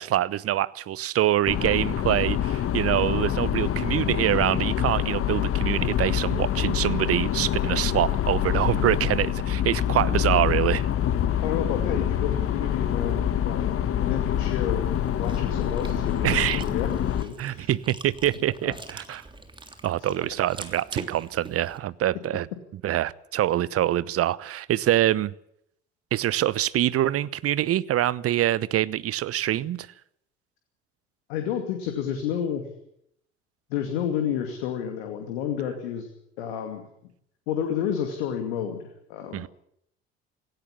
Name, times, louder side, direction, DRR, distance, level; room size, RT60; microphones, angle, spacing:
voice 1, 0.0-10.9 16.2-16.6 17.4-19.2 19.8-22.5 22.8-25.3 26.1-29.9 39.3-39.5, right 13 dB, 45° right, 0.9 m, -25 dB
sound 1, 1.5-17.2, left 10 dB, 45° left, 1.5 m, -26 dB
voice 2, 11.4-13.7 14.0-17.7 18.6-18.7 20.2-20.3 31.3-32.7 33.7-36.1 36.4-36.9 37.5-39.4, left 8 dB, 70° left, 2.5 m, -30 dB
Chewing mastication, 14.9-21.8, right 2 dB, 15° right, 3.2 m, -43 dB
17.5 x 17.0 x 10.0 m
hypercardioid pair, 60°, 32 cm